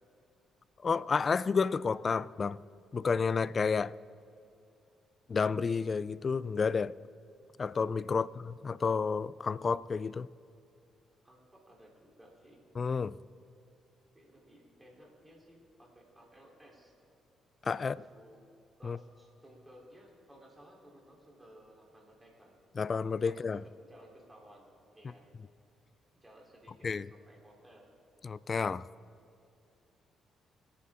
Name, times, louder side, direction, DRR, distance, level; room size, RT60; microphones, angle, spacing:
voice 1, 0.8-2.6 2.9-3.9 5.3-6.9 7.6-10.3 12.8-13.2 17.6-18.0 18.8-19.0 22.8-23.6 26.8-27.1 28.2-28.8, left 5 dB, 40° left, 0.3 m, -30 dB
voice 2, 8.1-8.6 11.2-12.6 14.1-16.9 17.8-18.5 18.8-22.5 23.3-23.6 23.9-24.7 24.9-25.3 26.2-27.9, equal, 15° right, 3.8 m, -58 dB
27.0 x 9.6 x 3.8 m
cardioid pair, 90°, 0 cm